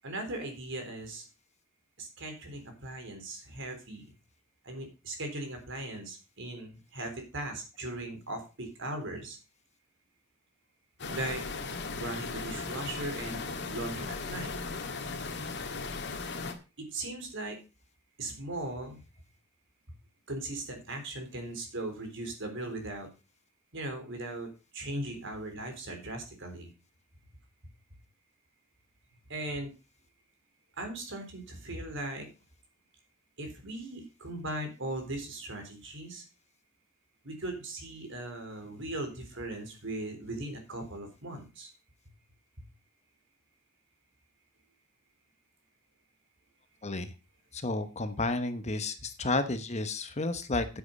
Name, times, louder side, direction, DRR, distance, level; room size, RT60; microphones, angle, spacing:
voice 1, 0.0-1.3 2.0-4.1 4.6-9.4 11.0-11.4 11.9-14.5 16.9-17.6 18.2-19.0 20.3-23.1 23.7-24.5 24.7-26.7 29.3-29.7 30.8-32.3 33.4-36.2 37.2-41.7, right 2 dB, 65° right, 5 dB, 3.8 m, -38 dB
sound 1, 11.0-16.5, left 4 dB, 60° left, 1.8 m, -37 dB
voice 2, 46.8-47.1 47.5-50.7, left 2 dB, 35° left, 10 dB, 1.1 m, -31 dB
9.9 x 7.9 x 5.3 m, 0.31 s
head